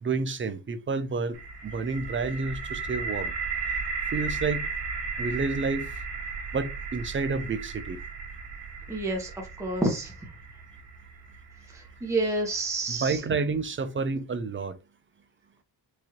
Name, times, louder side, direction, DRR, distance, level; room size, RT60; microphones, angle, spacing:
voice 1, 0.0-3.3 4.1-4.7 5.2-5.9 6.5-8.0 12.9-14.8, right 4 dB, 30° right, 0.5 m, -29 dB
sound 1, 1.3-13.2, right 4 dB, 75° right, 1.1 m, -36 dB
voice 2, 8.9-10.1 11.7-13.2, right 2 dB, 5° right, 0.9 m, -29 dB
4.7 x 2.6 x 2.9 m
wide cardioid pair, 135°, 40 cm